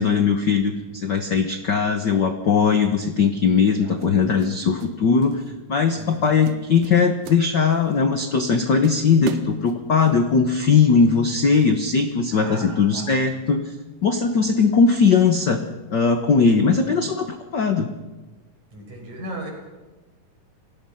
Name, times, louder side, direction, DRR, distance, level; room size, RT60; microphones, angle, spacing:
voice 1, 0.0-5.4 5.7-13.7 14.0-15.6 15.9-17.9, left 5 dB, 70° left, 7 dB, 1.0 m, -19 dB
sound 1, 2.7-2.9 4.0-5.0 5.2-5.5 6.0-6.2 6.4-8.0 8.4-8.5 8.8-10.2, right 8 dB, 80° right, 2.7 m, -34 dB
voice 2, 12.3-13.1 18.7-19.5, right 1 dB, 65° right, 1 dB, 6.9 m, -36 dB
28.5 x 18.0 x 5.7 m, 1.2 s
omnidirectional pair, 3.8 m